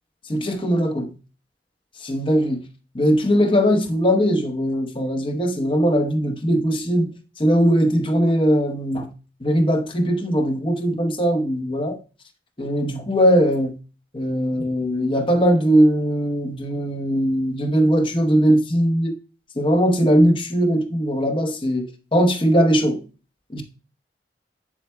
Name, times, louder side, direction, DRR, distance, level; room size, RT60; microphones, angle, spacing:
voice 1, 0.3-1.1 2.0-2.6 2.9-7.1 7.4-9.1 9.4-12.0 12.6-13.7 14.1-19.1 19.6-23.0 23.5-23.6, equal, 30° left, 0.9 m, -20 dB
7.9 x 7.3 x 2.2 m
head